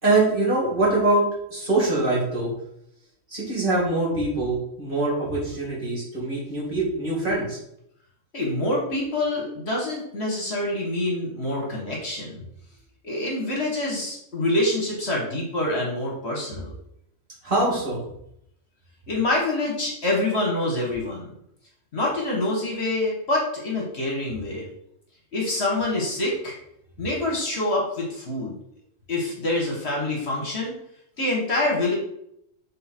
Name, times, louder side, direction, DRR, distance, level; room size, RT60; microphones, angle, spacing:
voice 1, 0.0-1.2 1.5-2.5 3.3-7.6 17.4-18.0, right 2 dB, 40° right, -5 dB, 2.5 m, -23 dB
voice 2, 8.3-12.4 13.0-16.7 19.1-21.3 21.9-24.7 25.3-26.5 27.0-28.5 29.1-30.8 31.2-31.9, left 2 dB, 50° left, -2 dB, 1.6 m, -26 dB
6.4 x 3.7 x 4.4 m, 0.75 s
omnidirectional pair, 1.4 m